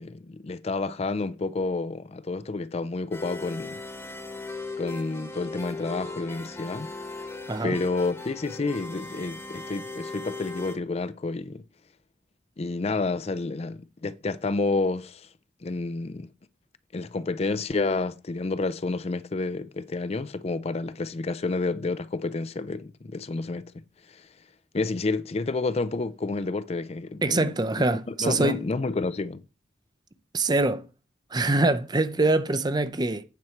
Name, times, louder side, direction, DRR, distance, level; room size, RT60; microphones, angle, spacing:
voice 1, 0.0-3.8 4.8-6.9 7.6-11.6 12.6-15.3 15.6-16.3 16.9-23.7 24.1-24.3 24.7-29.4, left 3 dB, 35° left, 0.4 m, -30 dB
sound 1, 3.1-10.7, left 3 dB, 15° left, 1.2 m, -38 dB
voice 2, 27.2-28.6 30.3-30.8 31.3-33.2, right 2 dB, 20° right, 0.6 m, -24 dB
9.2 x 4.6 x 7.1 m
head